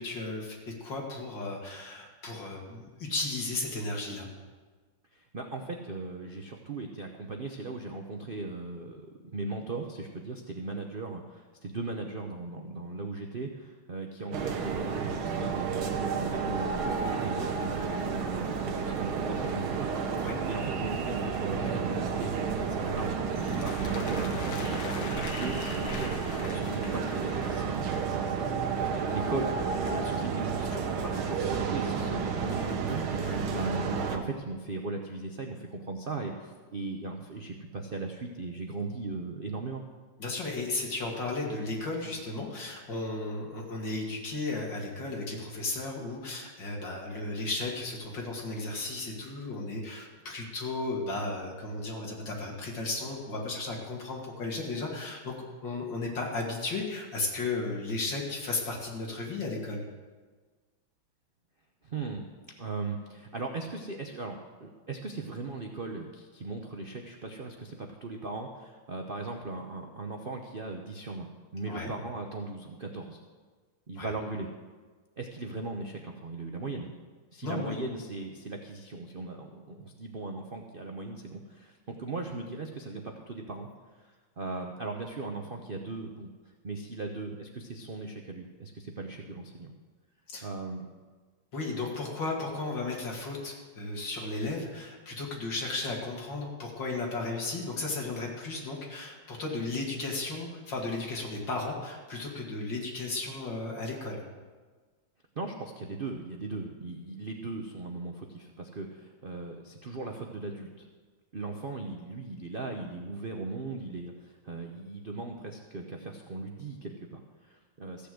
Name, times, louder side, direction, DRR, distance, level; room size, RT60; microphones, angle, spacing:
voice 1, 0.0-4.3 20.1-20.4 32.6-32.7 33.2-33.4 40.2-55.3 55.6-59.8 71.7-71.9 74.0-74.1 77.4-77.8 90.3-90.5 91.5-104.2, left 3 dB, 60° left, -1 dB, 3.0 m, -34 dB
voice 2, 5.1-20.2 20.5-22.3 22.7-39.8 61.8-62.3 62.6-73.2 73.9-74.5 75.2-76.9 77.3-83.7 84.0-84.1 84.4-86.3 86.6-89.7 90.4-90.9 105.4-110.9 111.3-118.1, right 3 dB, 50° right, 3 dB, 0.6 m, -38 dB
sound 1, 14.3-34.2, right 5 dB, 80° right, 1.9 m, -31 dB
sound 2, 23.4-28.2, left 5 dB, 85° left, 1.9 m, -43 dB
15.0 x 6.9 x 7.8 m, 1.4 s
omnidirectional pair, 2.3 m